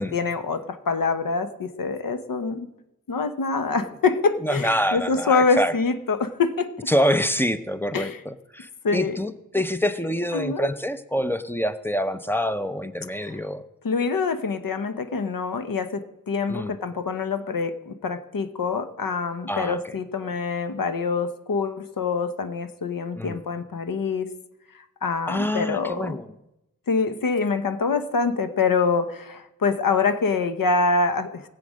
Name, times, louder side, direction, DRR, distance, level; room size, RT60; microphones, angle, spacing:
voice 1, 0.0-2.7 3.1-6.7 7.9-8.2 8.8-9.2 10.3-10.7 13.8-24.3 25.0-26.2 26.9-31.4, left 4 dB, 75° left, 10 dB, 0.9 m, -25 dB
voice 2, 4.4-5.7 6.9-13.6 16.5-16.7 19.5-19.8 23.2-23.4 25.3-26.3, equal, 5° left, 11 dB, 0.6 m, -26 dB
17.5 x 7.7 x 6.3 m, 0.91 s
wide cardioid pair, 110°, 34 cm